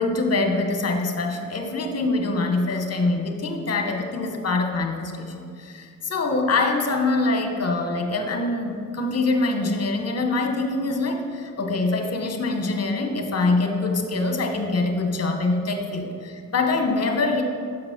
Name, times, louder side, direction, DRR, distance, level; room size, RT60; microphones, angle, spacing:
voice 1, 0.0-17.4, left 3 dB, 45° left, 4 dB, 1.0 m, -24 dB
6.3 x 4.7 x 5.8 m, 2.2 s
cardioid pair, 90°, 34 cm